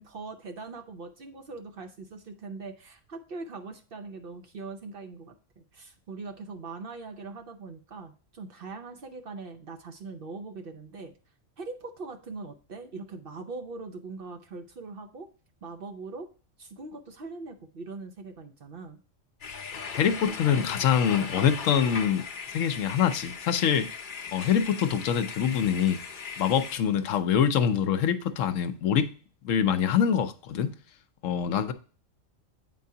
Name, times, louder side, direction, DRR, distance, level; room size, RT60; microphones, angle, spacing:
voice 1, 0.0-11.1 11.6-15.3 15.6-16.3 16.6-19.0, right 3 dB, 55° right, 0.8 m, -41 dB
sound 1, 19.4-26.8, left 5 dB, 45° left, 0.8 m, -38 dB
voice 2, 20.0-24.0 24.3-26.0 26.4-29.1 29.4-30.7 31.2-31.7, left 8 dB, 80° left, 1.0 m, -25 dB
8.2 x 4.6 x 2.7 m
omnidirectional pair, 1.3 m